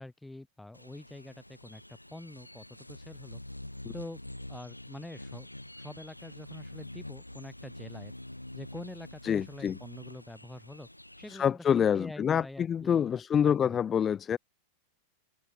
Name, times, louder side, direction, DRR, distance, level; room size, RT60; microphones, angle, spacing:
voice 1, 0.0-3.4 3.9-4.2 4.5-5.5 5.8-8.1 8.5-10.9 11.2-13.8, left 2 dB, 5° left, 2.8 m, -46 dB
sound 1, 0.7-11.5, left 1 dB, 85° left, 2.3 m, -46 dB
voice 2, 9.2-9.8 11.3-14.4, left 8 dB, 25° left, 0.3 m, -27 dB
figure-of-eight pair, 90°, 0 cm